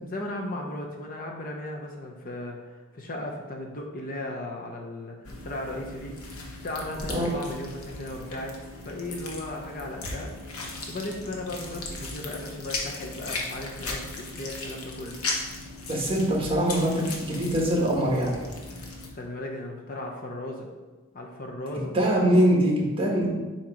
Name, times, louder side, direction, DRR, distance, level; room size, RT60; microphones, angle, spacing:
voice 1, 0.0-5.2 5.4-6.1 6.6-8.5 8.8-10.3 10.9-15.2 19.1-20.7 21.1-21.9, left 1 dB, 40° left, 0 dB, 0.8 m, -36 dB
sound 1, 5.2-19.1, left 2 dB, 80° left, 1.1 m, -37 dB
voice 2, 15.9-18.4 21.9-23.3, equal, 25° right, -3 dB, 1.4 m, -23 dB
7.4 x 2.9 x 5.1 m, 1.3 s
head